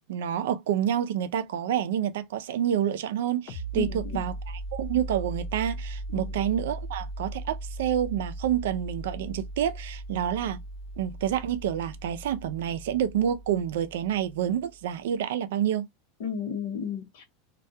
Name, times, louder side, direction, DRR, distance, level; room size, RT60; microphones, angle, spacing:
voice 1, 0.1-4.3 4.7-10.6 11.0-15.9, right 10 dB, 80° right, 0.4 m, -28 dB
sound 1, 3.5-14.8, right 1 dB, 45° left, 0.6 m, -38 dB
voice 2, 3.7-4.3 6.1-6.3 16.2-17.2, left 7 dB, 60° left, 1.0 m, -33 dB
2.3 x 2.2 x 2.6 m
supercardioid pair, 180°, 0 cm